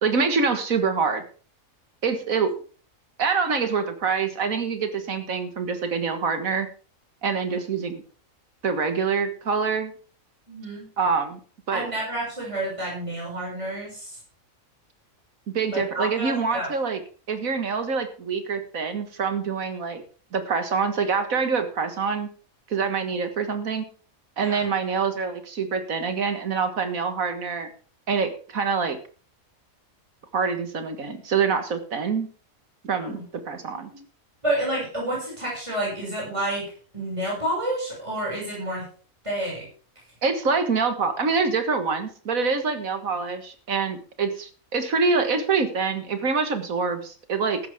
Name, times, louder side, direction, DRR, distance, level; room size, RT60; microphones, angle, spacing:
voice 1, 0.0-1.2 2.0-2.5 3.2-6.7 7.2-8.0 8.6-9.9 11.0-11.4 11.7-11.9 15.5-17.0 17.3-20.0 20.3-22.3 22.7-23.9 24.4-27.7 28.1-29.0 30.3-32.3 32.8-33.2 33.5-33.9 40.2-47.6, right 5 dB, 80° right, 8 dB, 2.1 m, -25 dB
voice 2, 10.5-10.9 11.7-14.2 15.7-16.7 24.4-24.7 33.0-33.2 33.7-34.0 34.4-36.7 36.9-38.9 39.2-39.7, right 1 dB, 20° right, -4 dB, 6.7 m, -29 dB
14.5 x 11.5 x 3.6 m, 0.41 s
omnidirectional pair, 1.4 m